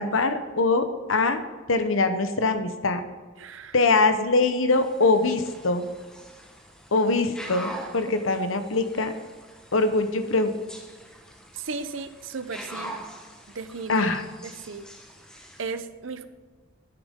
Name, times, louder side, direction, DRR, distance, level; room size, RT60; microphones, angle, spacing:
voice 1, 0.0-1.4 1.7-3.0 3.7-5.8 6.9-9.1 9.7-10.5 13.9-14.2, left 3 dB, 80° left, 8 dB, 1.0 m, -23 dB
voice 2, 3.4-3.8 11.5-12.9 13.5-14.1 14.4-14.9 15.6-16.2, right 4 dB, 75° right, 11 dB, 0.7 m, -35 dB
sound 1, 4.7-15.7, right 1 dB, 5° left, 1.1 m, -44 dB
10.0 x 9.2 x 3.6 m, 1.4 s
head